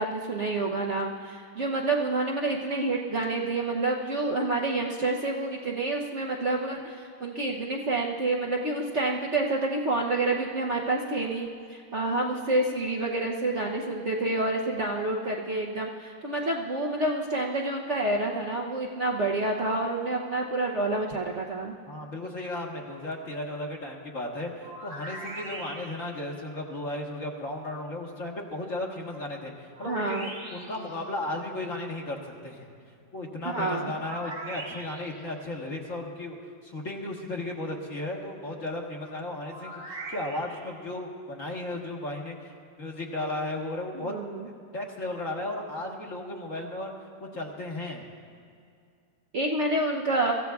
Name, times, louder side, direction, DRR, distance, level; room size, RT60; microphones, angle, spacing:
voice 1, 0.0-21.7 29.9-30.3 33.4-33.9 43.9-44.5 49.3-50.3, right 2 dB, 50° right, -1 dB, 0.9 m, -28 dB
voice 2, 21.9-32.7 33.1-36.4 36.6-42.5 42.8-44.1 44.7-46.9 47.2-48.1, left 1 dB, 45° left, -1 dB, 1.7 m, -35 dB
sound 1, 24.6-26.2 29.7-30.9 34.0-35.3 39.4-40.7, right 2 dB, 75° right, 2.8 m, -41 dB
24.0 x 15.0 x 2.3 m, 2.4 s
omnidirectional pair, 2.0 m